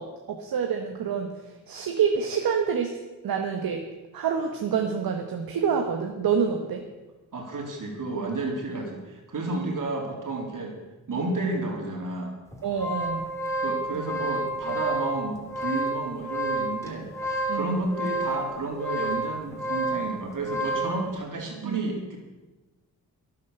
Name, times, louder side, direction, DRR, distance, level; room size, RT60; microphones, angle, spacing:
voice 1, 0.0-2.9 3.2-3.9 4.1-6.8 12.6-13.2 17.5-17.7 21.6-21.8, right 6 dB, 75° right, 3 dB, 1.4 m, -27 dB
voice 2, 7.3-10.8 11.1-12.4 13.6-22.2, right 2 dB, 60° right, 1 dB, 3.7 m, -31 dB
sound 1, 12.5-21.0, right 1 dB, 10° left, 3.1 m, -30 dB
12.0 x 11.0 x 6.7 m, 1.1 s
cardioid pair, 70°, 36 cm